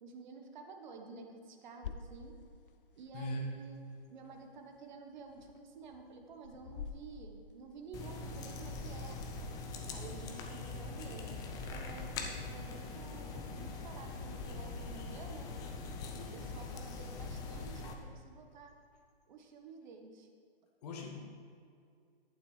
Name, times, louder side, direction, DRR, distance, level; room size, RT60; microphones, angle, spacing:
voice 1, 0.0-2.4 2.9-9.2 9.9-15.5 16.3-18.7 19.3-20.3, right 4 dB, 50° right, 4 dB, 1.2 m, -51 dB
sound 1, 1.8-16.1, left 6 dB, 60° left, 0.7 m, -54 dB
voice 2, 3.1-3.5 16.1-16.5 20.8-21.3, equal, 40° left, 1 dB, 1.5 m, -40 dB
sound 2, 7.9-17.9, left 3 dB, 10° left, 0.5 m, -42 dB
11.0 x 8.8 x 3.2 m, 2.3 s
hypercardioid pair, 130°, 30 cm